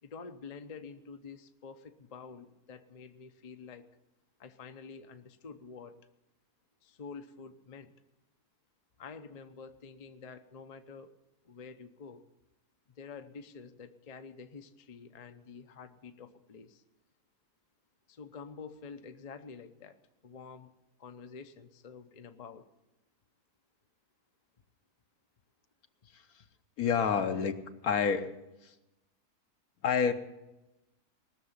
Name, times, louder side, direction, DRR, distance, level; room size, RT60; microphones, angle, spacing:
voice 1, 0.0-3.9 4.4-6.0 6.8-8.0 9.0-11.1 11.4-12.2 13.0-16.8 18.1-20.7 21.0-22.7, left 5 dB, 35° left, 7 dB, 0.7 m, -48 dB
voice 2, 26.8-27.6 27.8-28.3 28.6-28.7 29.8-30.1, left 6 dB, 70° left, 8 dB, 1.4 m, -28 dB
19.5 x 6.8 x 9.6 m, 0.98 s
omnidirectional pair, 1.7 m